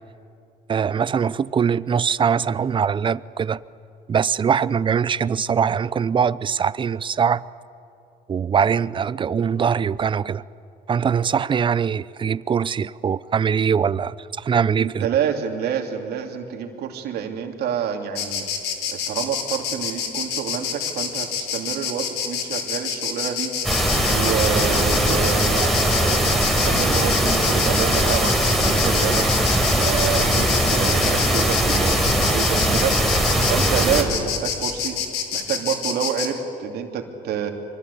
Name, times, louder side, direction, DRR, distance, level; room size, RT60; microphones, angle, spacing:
voice 1, 0.7-3.6 4.1-7.4 8.3-10.4 10.9-15.1, right 7 dB, 30° right, 0.6 m, -22 dB
voice 2, 14.8-18.4 18.9-23.5 24.1-29.3 29.7-32.9 33.5-35.0 35.3-37.5, right 8 dB, 70° right, 2.9 m, -28 dB
Insect, 18.1-36.3, left 7 dB, 85° left, 3.5 m, -27 dB
sound 1, 23.6-34.0, right 1 dB, ahead, 4.3 m, -20 dB
25.0 x 23.5 x 8.4 m
cardioid pair, 110°, 17 cm